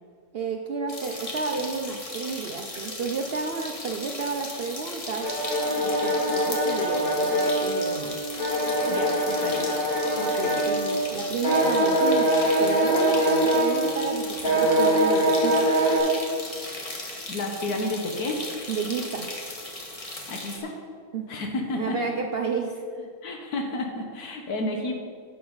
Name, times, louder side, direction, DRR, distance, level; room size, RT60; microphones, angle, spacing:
voice 1, 0.3-5.3 5.8-8.2 10.2-12.3 12.6-15.7 18.7-19.3 21.1-21.2 21.7-23.1, right 4 dB, 60° right, 4 dB, 0.6 m, -31 dB
sound 1, 0.9-20.6, left 2 dB, 25° left, 1.2 m, -37 dB
sound 2, 5.2-11.1 11.4-14.1 14.4-16.0, right 1 dB, 65° left, 3.4 m, -23 dB
voice 2, 8.9-9.8 17.3-18.4 20.3-20.7 21.3-22.1 23.2-24.9, left 2 dB, 85° left, 3 dB, 1.7 m, -31 dB
11.0 x 7.6 x 3.9 m, 2.1 s
omnidirectional pair, 1.6 m